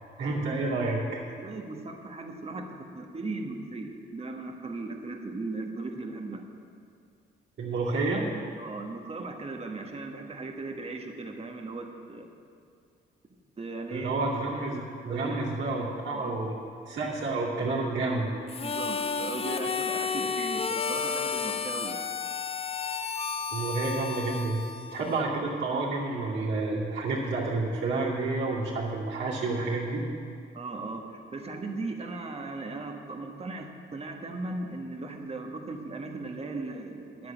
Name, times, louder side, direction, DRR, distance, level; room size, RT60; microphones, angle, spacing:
voice 1, 0.2-1.2 7.6-8.3 13.9-16.5 16.9-18.4 23.5-24.6 24.9-30.0, right 3 dB, 65° right, -10 dB, 2.5 m, -29 dB
voice 2, 1.2-6.4 8.6-12.3 13.6-14.1 14.6-14.7 15.1-15.4 16.1-16.5 18.6-22.0 30.5-37.3, right 3 dB, 30° right, 3 dB, 1.5 m, -37 dB
Harmonica, 18.5-25.4, left 5 dB, 30° left, 0.5 m, -32 dB
10.0 x 7.7 x 8.7 m, 2.3 s
cardioid pair, 90°, 20 cm